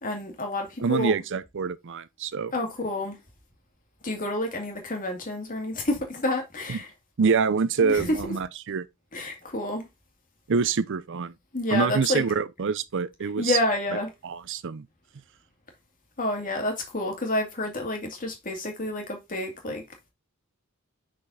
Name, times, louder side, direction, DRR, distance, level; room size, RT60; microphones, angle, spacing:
voice 1, 0.0-1.2 2.5-3.2 4.0-6.9 7.8-8.3 9.1-9.9 11.5-12.2 13.4-14.1 16.2-19.8, left 2 dB, 40° left, 2.1 m, -29 dB
voice 2, 0.8-2.5 6.7-6.8 7.2-8.9 10.5-11.3 11.7-13.6 14.2-14.9, right 5 dB, 60° right, 0.5 m, -26 dB
5.8 x 5.1 x 3.9 m
head